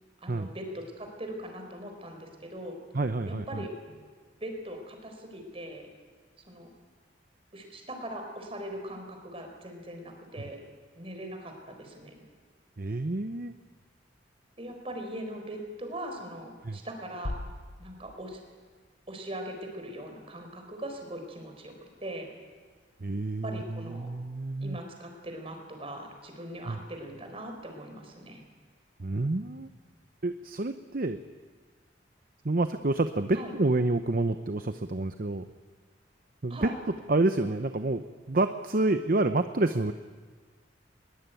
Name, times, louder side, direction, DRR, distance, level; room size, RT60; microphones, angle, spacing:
voice 1, 0.2-2.8 3.3-3.7 4.4-5.9 6.5-6.7 7.5-10.6 10.9-12.2 14.6-17.4 17.8-18.4 19.1-21.7 22.0-22.3 23.4-24.1 24.6-28.4 33.3-33.5 36.5-36.8, right 1 dB, 30° right, 4 dB, 4.5 m, -40 dB
voice 2, 2.9-3.6 12.8-13.5 16.6-16.8 23.0-24.8 26.6-26.8 29.0-29.7 30.2-31.2 32.4-35.5 36.4-36.7 37.1-39.9, right 2 dB, 50° right, 9 dB, 0.8 m, -28 dB
sound 1, 17.2-19.1, left 1 dB, 65° left, 1.0 m, -40 dB
21.5 x 21.0 x 9.3 m, 1.5 s
head